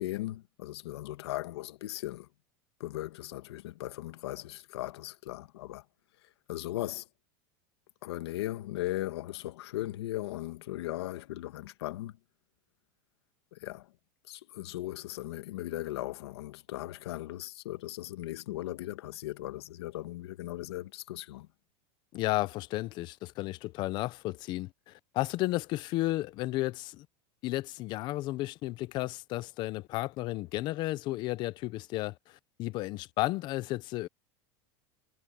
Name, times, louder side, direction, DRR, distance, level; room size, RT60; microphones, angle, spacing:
voice 1, 0.0-2.3 2.8-5.8 6.5-7.1 8.0-12.2 13.5-13.9 14.3-21.5, left 16 dB, 85° left, 1.8 m, -38 dB
voice 2, 22.1-27.1 27.4-34.1, left 18 dB, 35° left, 0.6 m, -33 dB
supercardioid pair, 165°, 13 cm